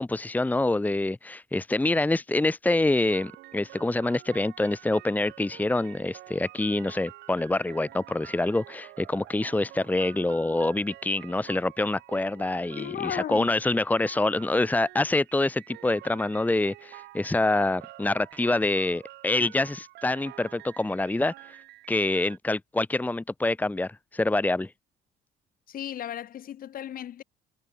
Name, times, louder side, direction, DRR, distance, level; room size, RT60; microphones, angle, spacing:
voice 1, 0.0-21.6 21.9-24.7, left 2 dB, 10° left, 1.3 m, -26 dB
sound 1, 3.1-22.4, right 17 dB, 80° right, 4.5 m, -48 dB
voice 2, 12.8-13.5 25.7-27.2, left 11 dB, 60° left, 5.9 m, -35 dB
cardioid pair, 110°, 17 cm